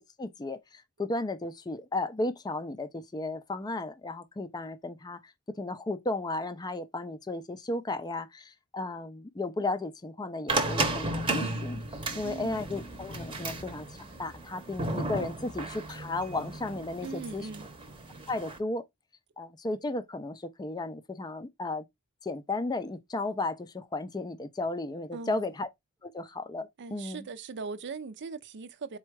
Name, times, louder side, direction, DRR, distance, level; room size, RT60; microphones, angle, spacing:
voice 1, 0.2-11.8 12.1-17.5 18.3-18.9 19.4-21.8 22.2-25.7 26.0-27.3, left 2 dB, 20° left, 0.4 m, -34 dB
sound 1, 10.5-18.6, right 2 dB, 25° right, 0.8 m, -34 dB
voice 2, 12.1-12.6 17.0-17.7 25.1-25.5 26.8-29.0, right 4 dB, 55° right, 0.5 m, -40 dB
4.3 x 2.3 x 4.6 m
head